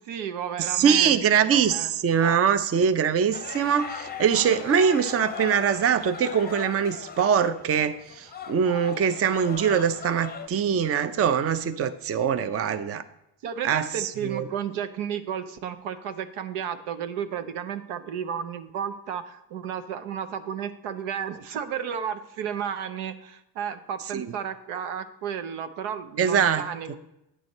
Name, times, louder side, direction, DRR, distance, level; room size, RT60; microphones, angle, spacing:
voice 1, 0.0-1.9 2.2-2.4 3.6-3.7 12.5-12.8 13.4-27.0, right 8 dB, 80° right, 10 dB, 0.8 m, -33 dB
voice 2, 0.6-13.0 13.6-14.4 24.1-24.3 26.2-26.6, right 7 dB, 30° right, 12 dB, 0.5 m, -23 dB
sound 1, 3.3-10.5, left 6 dB, 20° left, 0.6 m, -39 dB
9.0 x 6.2 x 4.1 m, 0.84 s
supercardioid pair, 75°, 49 cm